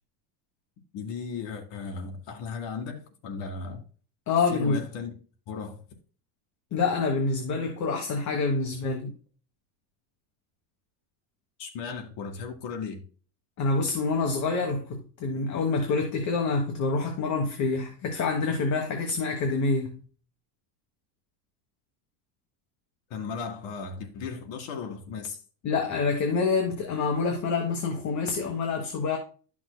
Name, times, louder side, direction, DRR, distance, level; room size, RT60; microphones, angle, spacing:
voice 1, 0.9-3.8 4.5-5.1 5.5-5.8 11.6-13.1 23.1-25.4, left 5 dB, 60° left, 2.1 m, -36 dB
voice 2, 4.3-4.8 6.7-9.1 13.6-20.0 25.6-29.2, left 4 dB, 35° left, 1.3 m, -27 dB
12.0 x 6.1 x 2.2 m
cardioid pair, 155°, 48 cm